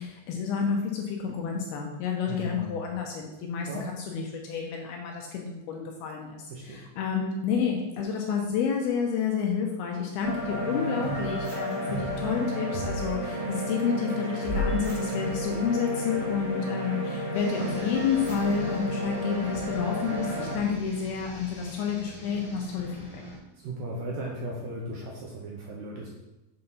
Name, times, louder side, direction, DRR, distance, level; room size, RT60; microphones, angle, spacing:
voice 1, 0.0-23.2, left 6 dB, 75° left, 1 dB, 2.4 m, -30 dB
voice 2, 2.3-2.8 3.7-3.9 6.5-6.8 23.6-26.1, right 1 dB, 70° right, -3 dB, 2.2 m, -36 dB
sound 1, 10.2-20.6, equal, 50° right, 2.4 m, -31 dB
sound 2, 17.3-23.4, left 1 dB, 30° left, 3.1 m, -43 dB
7.8 x 4.2 x 5.3 m, 0.97 s
omnidirectional pair, 5.1 m